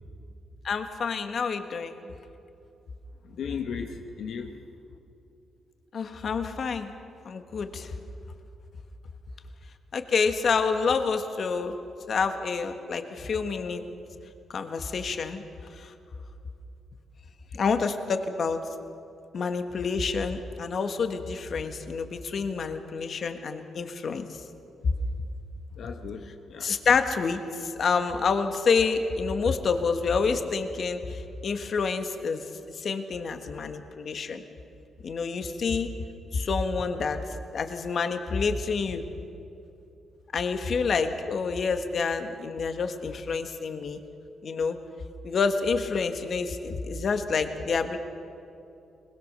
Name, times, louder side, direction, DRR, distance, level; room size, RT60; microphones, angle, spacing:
voice 1, 0.6-1.9 5.9-6.9 7.2-7.9 9.9-11.7 12.1-13.8 14.5-15.4 15.7-15.9 17.5-18.6 19.3-24.3 26.6-32.4 32.7-34.4 35.0-35.9 36.3-37.2 37.5-39.0 40.3-44.0 44.4-44.8 45.2-48.0, left 5 dB, 55° left, 1.5 m, -28 dB
voice 2, 3.2-4.6 25.8-26.7, left 6 dB, 70° left, 1.3 m, -36 dB
22.0 x 20.5 x 6.8 m
cardioid pair, 100°, 0 cm